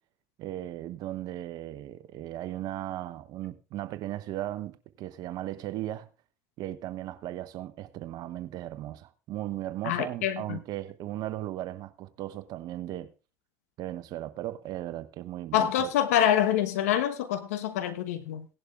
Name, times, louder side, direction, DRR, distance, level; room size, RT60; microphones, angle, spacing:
voice 1, 0.4-6.1 6.6-13.1 13.8-15.9, right 13 dB, 55° right, 0.9 m, -37 dB
voice 2, 9.8-10.6 15.5-18.5, left 10 dB, 80° left, 1.1 m, -26 dB
17.0 x 11.0 x 2.4 m
hypercardioid pair, 75°, 8 cm